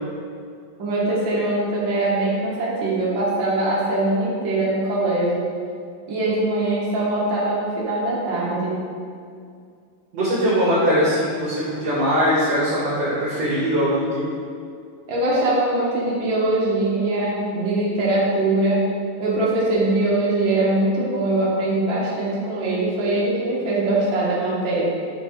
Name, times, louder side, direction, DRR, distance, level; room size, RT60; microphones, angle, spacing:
voice 1, 0.8-5.5 6.1-8.8 15.1-18.9 19.2-24.8, right 2 dB, 80° right, -6 dB, 1.1 m, -22 dB
voice 2, 10.1-14.2, equal, 60° right, -8 dB, 1.9 m, -21 dB
5.6 x 5.4 x 4.4 m, 2.3 s
omnidirectional pair, 4.1 m